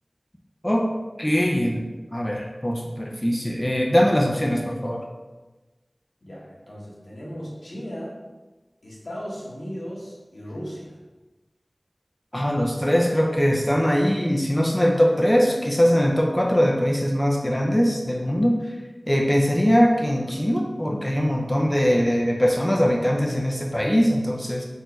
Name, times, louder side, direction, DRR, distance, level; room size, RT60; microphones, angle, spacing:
voice 1, 1.2-1.9 2.1-5.0 12.3-18.6 19.1-24.7, equal, 15° left, -1 dB, 0.6 m, -21 dB
voice 2, 6.2-8.2 8.8-11.0, equal, 85° left, -6 dB, 1.3 m, -36 dB
4.3 x 2.7 x 4.4 m, 1.2 s
wide cardioid pair, 55°, 0 cm